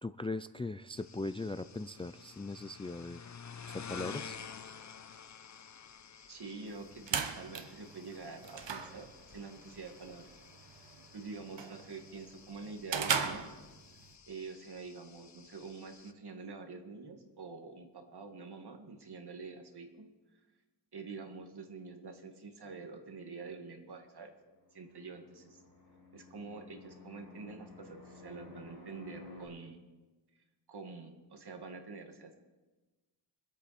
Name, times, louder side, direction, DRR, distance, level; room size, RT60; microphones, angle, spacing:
voice 1, 0.0-3.2 3.7-4.3, left 2 dB, 15° left, 12 dB, 0.3 m, -39 dB
sound 1, 1.0-16.1, left 7 dB, 40° left, 0.7 m, -51 dB
voice 2, 6.3-10.3 10.8-13.5 14.3-20.1 20.3-20.4 20.9-24.3 24.7-25.6 26.1-29.9 30.7-32.4, right 4 dB, 65° right, 4 dB, 2.0 m, -47 dB
sound 2, 6.7-14.1, right 6 dB, 85° right, 1.2 m, -39 dB
Fixed-wing aircraft airplane, 24.6-29.5, left 2 dB, 60° left, 4.3 m, -54 dB
24.5 x 8.4 x 4.2 m, 1.2 s
wide cardioid pair, 100°, 43 cm